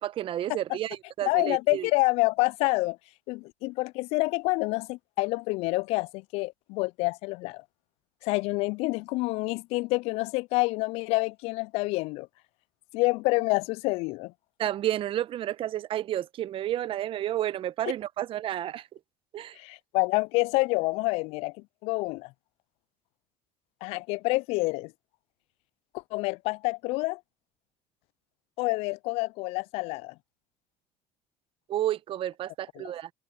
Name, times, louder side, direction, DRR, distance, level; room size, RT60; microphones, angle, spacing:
voice 1, 0.0-1.9 14.6-18.9 19.3-19.6 31.7-33.1, right 12 dB, 50° right, 1.3 m, -31 dB
voice 2, 1.2-3.0 3.3-7.6 8.2-12.3 12.9-14.3 19.6-21.5 21.8-22.3 23.8-24.9 25.9-27.2 28.6-30.1 32.8-32.9, left 24 dB, 65° left, 0.4 m, -27 dB
hypercardioid pair, 65°, 11 cm